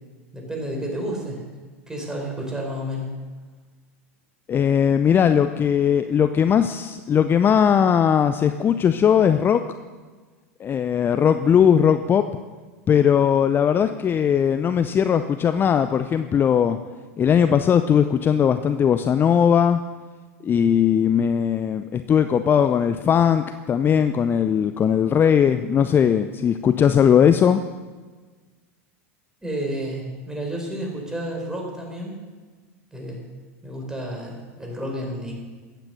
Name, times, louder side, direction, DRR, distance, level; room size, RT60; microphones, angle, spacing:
voice 1, 0.3-1.4 1.9-3.1 29.4-32.2 32.9-33.3 33.6-35.3, right 1 dB, 10° right, 0 dB, 4.8 m, -31 dB
voice 2, 4.5-9.6 10.6-12.3 12.9-16.8 17.2-19.8 20.4-27.6, left 8 dB, 25° left, 10 dB, 0.6 m, -19 dB
15.0 x 9.2 x 6.7 m, 1.4 s
hypercardioid pair, 90°, 8 cm